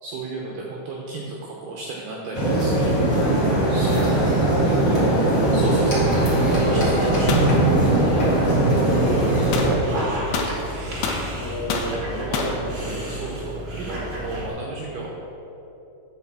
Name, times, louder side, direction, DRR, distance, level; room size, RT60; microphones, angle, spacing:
voice 1, 0.0-4.1 5.5-7.5 12.3-12.4 13.1-15.1, right 3 dB, 80° right, -2 dB, 2.3 m, -34 dB
sound 1, 2.3-9.7, right 1 dB, 40° left, 1.8 m, -19 dB
voice 2, 3.7-5.2 8.1-11.1 11.4-13.0, equal, 65° left, -8 dB, 1.8 m, -32 dB
Dog, 5.9-14.5, right 1 dB, 60° right, 1.3 m, -33 dB
sound 2, 7.3-7.5 9.5-9.8 10.3-11.3 11.7-11.9 12.3-12.6, left 5 dB, 90° left, 2.1 m, -26 dB
11.0 x 5.5 x 7.3 m, 2.9 s
omnidirectional pair, 5.8 m